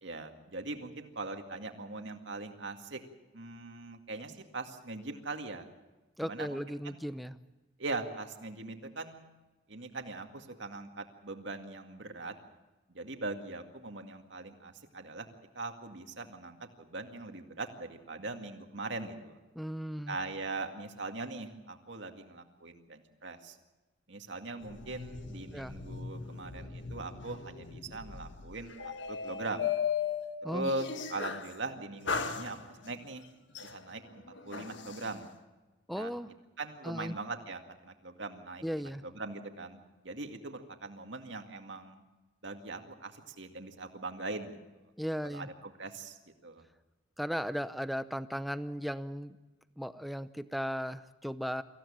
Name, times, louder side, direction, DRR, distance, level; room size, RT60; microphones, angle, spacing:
voice 1, 0.0-3.0 3.3-5.7 6.2-7.0 7.8-9.4 9.7-12.3 12.9-15.3 15.5-19.4 20.1-23.6 24.1-28.7 29.1-29.7 30.5-33.2 33.6-35.3 35.9-36.1 36.6-38.6 39.0-42.0 42.4-44.6 45.2-46.6, right 2 dB, 65° right, 5 dB, 2.2 m, -41 dB
voice 2, 6.2-7.4 19.6-20.2 25.5-25.8 30.4-30.7 35.9-36.3 36.8-37.2 38.6-39.0 45.0-45.5 47.2-49.4 49.8-51.6, equal, ahead, 12 dB, 0.6 m, -36 dB
sound 1, 24.6-31.6 32.1-33.0 33.5-35.1, left 6 dB, 65° left, 1.6 m, -38 dB
25.0 x 15.5 x 8.7 m, 1.1 s
head